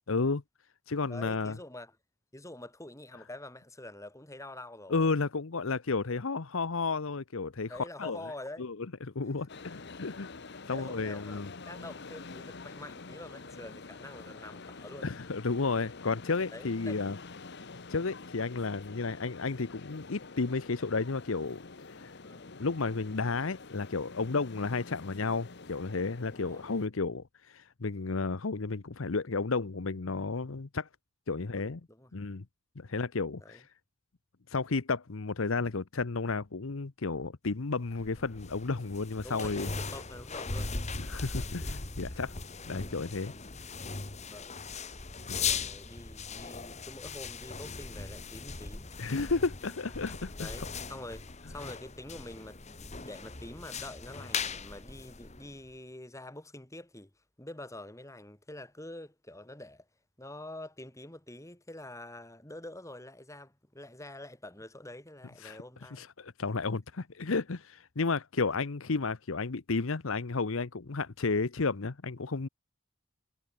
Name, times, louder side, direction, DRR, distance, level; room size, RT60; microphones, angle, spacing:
voice 1, 0.1-0.4 0.9-1.6 4.9-7.7 8.0-8.2 8.6-8.8 9.0-10.3 10.7-11.5 15.0-17.2 17.9-21.6 21.9-22.1 22.5-30.9 31.3-31.8 32.1-32.4 32.8-33.6 34.5-39.7 40.9-42.3 42.7-43.3 45.3-45.5 49.0-50.5 65.4-65.6 65.9-72.5, left 4 dB, 70° left, 0.9 m, -32 dB
voice 2, 1.1-1.9 2.3-5.0 7.7-8.7 9.4-9.5 10.6-11.4 11.7-15.2 16.5-17.0 22.2-22.5 26.3-26.6 31.6-32.1 33.4-33.6 39.2-40.8 44.3-44.6 45.2-48.9 50.4-57.1 57.4-59.9 60.2-66.1, left 1 dB, 15° left, 2.9 m, -46 dB
sound 1, 9.5-26.9, left 4 dB, 55° left, 1.1 m, -47 dB
sound 2, 37.9-55.7, left 5 dB, 30° left, 1.8 m, -39 dB
head